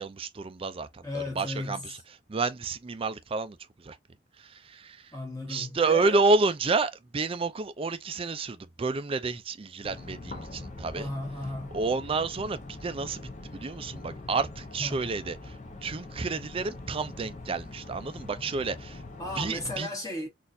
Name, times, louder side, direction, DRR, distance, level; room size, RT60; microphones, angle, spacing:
voice 1, 0.0-2.0 2.3-3.6 3.8-4.0 4.4-5.0 5.5-11.1 11.7-15.5 15.8-19.0 19.3-19.9, right 3 dB, 30° right, 0.4 m, -30 dB
voice 2, 1.0-2.0 5.1-6.2 10.9-11.8 14.8-15.1 19.2-20.3, left 2 dB, 20° left, 1.1 m, -35 dB
sound 1, 9.8-19.8, left 2 dB, 45° left, 0.8 m, -43 dB
4.1 x 2.5 x 2.6 m
head